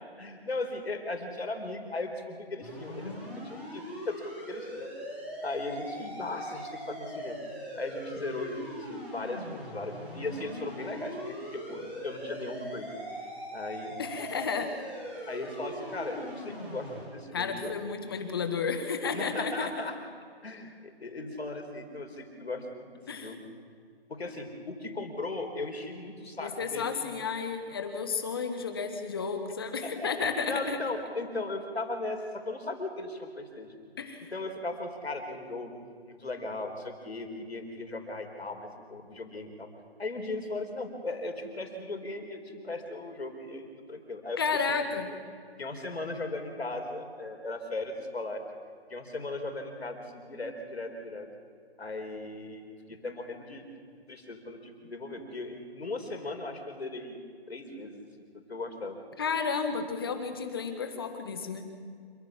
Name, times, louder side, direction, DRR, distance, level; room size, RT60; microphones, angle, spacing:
voice 1, 0.2-4.9 5.4-7.4 7.8-12.9 13.5-14.0 15.3-17.7 19.1-20.0 20.4-23.5 24.1-26.9 29.8-30.1 30.5-33.7 34.3-35.8 36.1-39.7 40.0-44.4 44.7-44.8 45.6-48.5 48.9-51.3 51.8-53.6 54.1-57.2 57.5-58.1 58.5-59.0, left 2 dB, 75° left, 5 dB, 4.4 m, -37 dB
sound 1, 2.6-17.0, equal, 5° right, 3.6 m, -41 dB
voice 2, 14.0-14.7 17.3-19.7 23.1-23.3 26.4-30.8 34.0-34.3 44.4-45.1 59.2-61.6, left 5 dB, 20° left, 7 dB, 1.5 m, -32 dB
27.0 x 15.0 x 7.4 m, 2.2 s
figure-of-eight pair, 170°, 32 cm